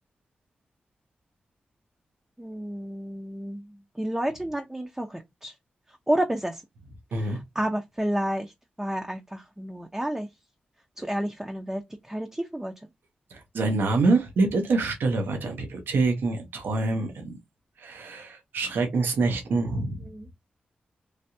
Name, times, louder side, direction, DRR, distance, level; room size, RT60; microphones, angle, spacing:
voice 1, 2.4-5.5 5.9-6.6 7.1-8.5 8.8-10.3 11.0-12.7 20.0-20.3, right 1 dB, 15° right, 0.6 m, -30 dB
voice 2, 13.3-17.4 17.8-20.1, right 3 dB, 80° right, 0.8 m, -26 dB
3.3 x 2.3 x 2.7 m
supercardioid pair, 45°, 4 cm